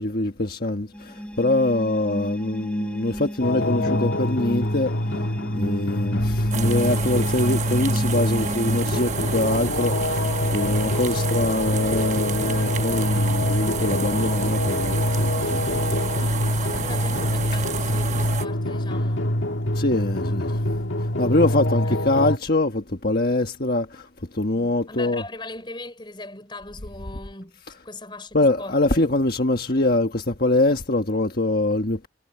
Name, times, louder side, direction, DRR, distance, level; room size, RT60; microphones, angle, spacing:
voice 1, 0.0-4.9 5.5-15.6 19.7-20.6 21.2-24.1 24.3-25.2 28.3-32.1, left 2 dB, 50° left, 1.4 m, -24 dB
sound 1, 0.9-8.8, equal, 5° left, 5.2 m, -33 dB
sound 2, 3.4-22.4, left 1 dB, 85° left, 1.7 m, -25 dB
sound 3, 6.5-18.5, right 5 dB, 40° right, 1.1 m, -30 dB
voice 2, 10.9-11.2 16.0-19.3 21.2-22.0 24.5-29.0, left 2 dB, 25° left, 4.1 m, -40 dB
head